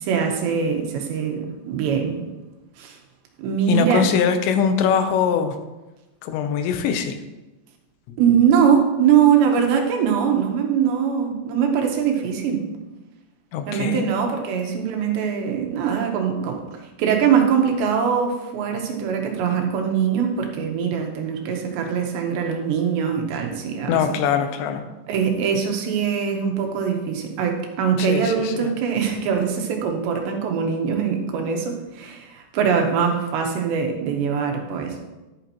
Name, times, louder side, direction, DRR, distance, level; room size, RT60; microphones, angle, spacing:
voice 1, 0.0-2.2 2.8-3.0 3.4-4.0 8.2-12.6 13.7-16.6 17.0-24.0 25.1-35.0, right 7 dB, 75° right, 2 dB, 3.3 m, -22 dB
voice 2, 3.7-5.6 6.2-7.2 13.5-14.1 23.9-24.8 28.0-28.7, left 7 dB, 80° left, 7 dB, 3.0 m, -22 dB
11.0 x 9.6 x 3.0 m, 1.1 s
omnidirectional pair, 5.2 m